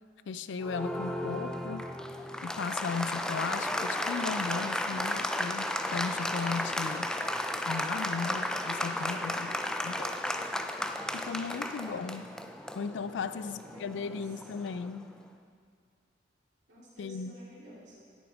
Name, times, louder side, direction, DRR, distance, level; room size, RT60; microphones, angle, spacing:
voice 1, 0.3-1.9 2.4-7.1 7.7-9.6 9.8-10.5 11.1-12.3 12.8-15.1 17.0-17.3, left 5 dB, 80° left, 13 dB, 0.4 m, -36 dB
Applause, 0.6-15.0, left 1 dB, 5° left, 0.3 m, -34 dB
voice 2, 13.2-14.8 16.7-18.1, equal, 75° right, -7 dB, 2.7 m, -54 dB
11.5 x 8.3 x 3.5 m, 2.2 s
head